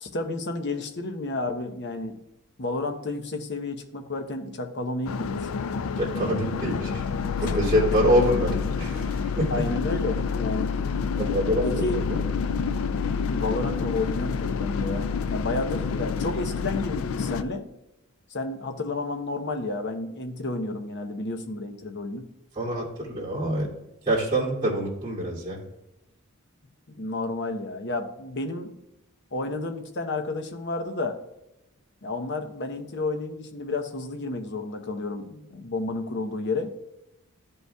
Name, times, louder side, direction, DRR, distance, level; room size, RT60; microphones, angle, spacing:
voice 1, 0.0-2.2 2.6-5.5 9.5-10.7 11.6-12.0 13.3-17.7 18.3-22.3 26.9-28.7 29.3-31.2 32.0-36.7, left 2 dB, 55° left, 5 dB, 0.8 m, -31 dB
sound 1, 5.1-17.4, left 5 dB, 70° left, 0.4 m, -28 dB
voice 2, 6.0-7.1 7.4-9.5 11.2-12.3 22.5-23.7 24.0-25.6, equal, 25° right, -7 dB, 2.5 m, -25 dB
12.5 x 5.4 x 2.3 m, 0.88 s
head